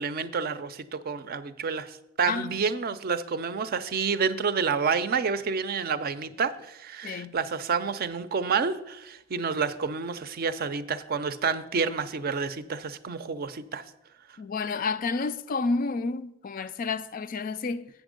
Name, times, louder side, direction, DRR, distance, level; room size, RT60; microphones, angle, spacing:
voice 1, 0.0-13.8, right 5 dB, 50° right, 0.5 m, -29 dB
voice 2, 2.3-2.6 7.0-7.3 14.4-17.9, left 4 dB, 45° left, 0.4 m, -30 dB
8.2 x 6.1 x 5.1 m
head